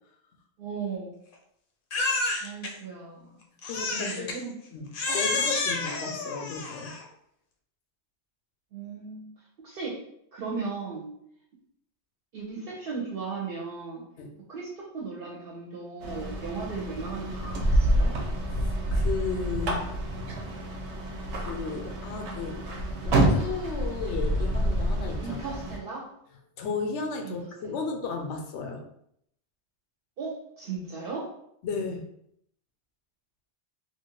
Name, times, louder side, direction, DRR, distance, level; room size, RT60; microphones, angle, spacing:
voice 1, 0.6-1.2 2.4-3.4 3.9-4.5 5.1-5.4 8.7-9.3 9.6-10.0 10.3-11.1 12.3-14.1 14.5-18.1 25.2-26.1 27.2-27.3 27.6-27.8 30.2-31.3, right 4 dB, 65° right, -4 dB, 0.8 m, -36 dB
Crying sobbing, 1.9-2.7 3.6-4.4 4.9-7.1, left 3 dB, 60° left, 0.7 m, -29 dB
voice 2, 3.7-4.4 4.7-6.9 14.2-14.3 18.9-19.9 21.3-22.6 23.0-25.6 26.6-28.8 31.6-32.0, left 4 dB, 90° left, 3 dB, 0.9 m, -34 dB
sound 1, 16.0-25.8, right 1 dB, 90° right, 0.9 m, -28 dB
2.9 x 2.4 x 3.0 m, 0.72 s
omnidirectional pair, 1.1 m